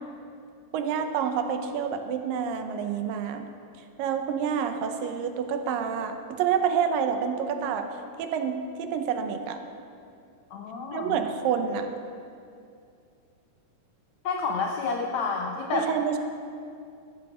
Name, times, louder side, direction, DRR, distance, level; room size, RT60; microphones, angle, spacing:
voice 1, 0.7-3.4 4.0-7.9 8.2-9.6 10.9-11.9 15.7-16.2, right 7 dB, 80° right, 7 dB, 2.4 m, -28 dB
voice 2, 10.5-11.2 14.2-15.9, left 4 dB, 80° left, 1 dB, 1.6 m, -29 dB
14.0 x 8.2 x 6.7 m, 2.4 s
omnidirectional pair, 4.1 m